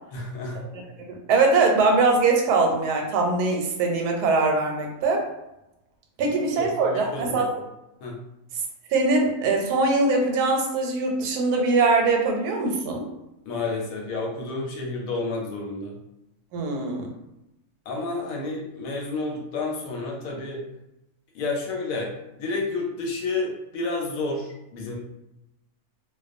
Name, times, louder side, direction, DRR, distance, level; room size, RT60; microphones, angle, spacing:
voice 1, 0.1-0.6 6.2-6.3 6.6-7.4 8.0-8.2 13.4-16.0 17.9-20.6 21.3-25.0, left 3 dB, 70° left, -1 dB, 1.0 m, -30 dB
voice 2, 1.1-5.3 6.2-7.5 8.9-13.1 16.5-17.1, right 3 dB, 85° right, 2 dB, 1.1 m, -22 dB
2.4 x 2.2 x 2.5 m, 0.90 s
omnidirectional pair, 1.6 m